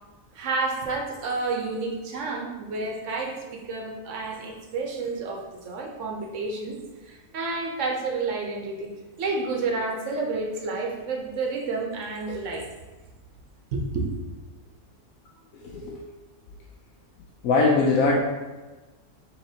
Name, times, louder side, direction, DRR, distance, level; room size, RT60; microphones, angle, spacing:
voice 1, 0.3-6.8 7.1-8.9 9.2-12.6 13.7-14.1, right 3 dB, 60° right, 0 dB, 1.0 m, -30 dB
voice 2, 15.5-16.0 17.4-18.2, left 3 dB, 70° left, -1 dB, 0.9 m, -21 dB
5.8 x 3.0 x 2.7 m, 1.2 s
omnidirectional pair, 1.6 m